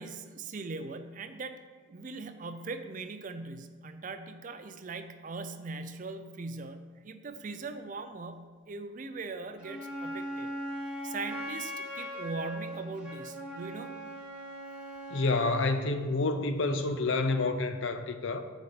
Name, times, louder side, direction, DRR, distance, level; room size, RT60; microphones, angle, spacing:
voice 1, 0.0-1.6 1.9-10.5 11.0-13.9, right 3 dB, 40° right, 0.4 m, -40 dB
Wind instrument woodwind instrument, 9.6-15.6, equal, 5° right, 1.4 m, -39 dB
voice 2, 15.1-18.4, left 3 dB, 70° left, 0.6 m, -28 dB
8.3 x 4.1 x 5.1 m
head